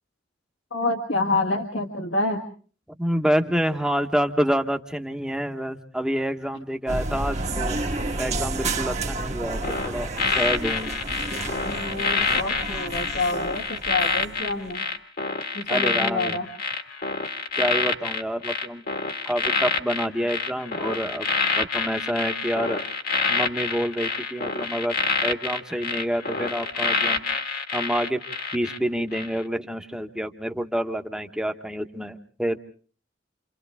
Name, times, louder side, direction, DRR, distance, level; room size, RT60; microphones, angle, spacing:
voice 1, 0.7-2.5 11.7-14.8 15.5-16.5, left 2 dB, 70° left, 2 dB, 1.7 m, -27 dB
voice 2, 3.0-7.8 8.2-10.1 10.3-10.9 15.7-16.4 17.6-18.8 19.2-21.3 21.6-22.9 23.3-27.2 27.7-28.2 28.5-32.6, equal, 5° right, 6 dB, 1.2 m, -27 dB
sound 1, 6.9-14.7, right 2 dB, 35° right, 1.5 m, -31 dB
sound 2, 9.6-28.8 29.1-29.4, left 4 dB, 50° left, 1.7 m, -27 dB
28.0 x 27.5 x 3.5 m, 0.42 s
head